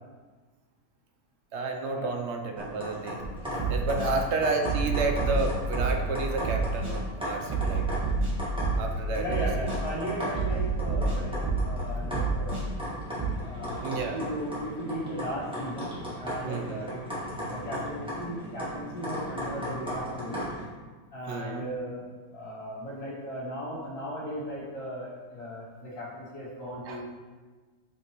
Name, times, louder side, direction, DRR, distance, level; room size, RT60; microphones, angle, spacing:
voice 1, 1.5-3.3 3.7-7.9 8.8-9.5 13.8-14.2 16.4-16.9 21.3-21.6 26.9-27.0, right 3 dB, 65° right, 3 dB, 0.7 m, -31 dB
sound 1, 2.6-20.7, equal, 5° right, 1.3 m, -37 dB
sound 2, 3.2-3.3 3.6-4.1 4.6-6.1 6.4-6.9 7.5-9.0 9.3-9.8 10.3-11.8 12.1-12.6 13.2-13.3, right 4 dB, 20° right, 1.1 m, -28 dB
voice 2, 3.9-4.2 9.2-11.4 11.6-12.7 13.4-13.9 14.1-17.0 17.5-20.4 21.1-22.0 22.3-27.0, equal, 55° left, -9 dB, 2.2 m, -36 dB
5.9 x 5.3 x 3.0 m, 1.4 s
omnidirectional pair, 1.6 m